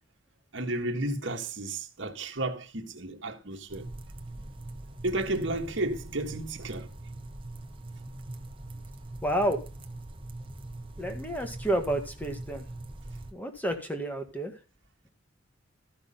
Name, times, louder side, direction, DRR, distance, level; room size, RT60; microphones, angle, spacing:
voice 1, 0.5-3.9 5.0-6.9, right 2 dB, 60° right, 1.6 m, -32 dB
sound 1, 3.7-13.3, right 2 dB, 25° right, 1.0 m, -42 dB
voice 2, 9.2-9.6 11.0-12.6 13.3-14.5, right 1 dB, 10° left, 1.6 m, -30 dB
13.5 x 6.1 x 5.5 m
head